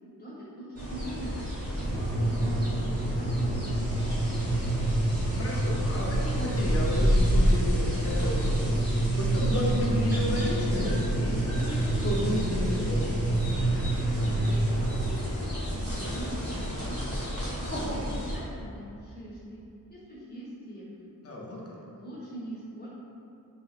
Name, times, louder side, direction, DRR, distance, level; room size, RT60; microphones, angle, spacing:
voice 1, 0.1-1.4 1.9-4.5 14.2-17.0 17.6-19.6 19.9-21.1 21.7-22.9, equal, 25° left, -9 dB, 1.0 m, -43 dB
sound 1, 0.7-18.4, equal, 45° right, 1.0 m, -31 dB
sound 2, 1.8-15.1, right 2 dB, 25° right, 0.3 m, -28 dB
voice 2, 5.4-8.6 8.8-13.1 21.2-21.8, left 1 dB, 40° left, -4 dB, 0.6 m, -32 dB
3.9 x 3.0 x 2.4 m, 2.7 s
wide cardioid pair, 115°, 35 cm